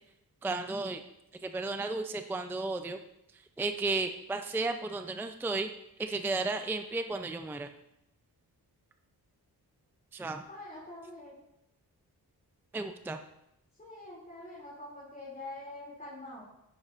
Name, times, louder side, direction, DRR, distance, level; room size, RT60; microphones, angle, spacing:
voice 1, 0.4-1.0 1.4-3.0 3.6-5.7 6.0-7.7 10.1-10.4 12.7-13.2, right 3 dB, 5° right, 7 dB, 0.4 m, -33 dB
voice 2, 10.5-11.4 13.8-16.5, left 2 dB, 25° left, -8 dB, 2.6 m, -45 dB
10.0 x 9.6 x 2.5 m, 0.84 s
wide cardioid pair, 110°, 38 cm